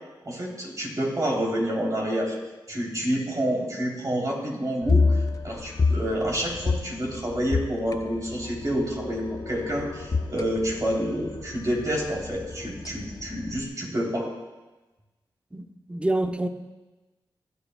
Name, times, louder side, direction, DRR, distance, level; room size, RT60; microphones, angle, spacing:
voice 1, 0.2-2.4 2.7-14.3, equal, 40° right, 3.2 m, -28 dB
sound 1, 4.8-13.6, left 4 dB, 40° left, 0.7 m, -29 dB
voice 2, 15.5-16.5, right 1 dB, 15° right, 0.8 m, -27 dB
22.5 x 8.0 x 2.2 m
cardioid pair, 60°, 9 cm